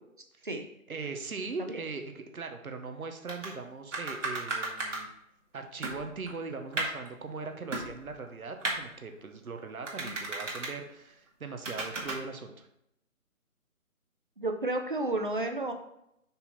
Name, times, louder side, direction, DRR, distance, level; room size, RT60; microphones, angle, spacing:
voice 1, 0.9-5.1 5.5-12.7, right 4 dB, 90° right, 5 dB, 1.2 m, -40 dB
sound 1, 3.3-3.5 3.9-5.0 5.5-5.6 5.8-7.1 7.7-8.3 8.6-8.8 9.8-10.7 11.6-12.2, right 2 dB, 60° right, 1.7 m, -34 dB
voice 2, 14.4-15.7, right 2 dB, 40° right, 5 dB, 0.6 m, -32 dB
5.5 x 4.4 x 4.1 m, 0.79 s
hypercardioid pair, 175°, 42 cm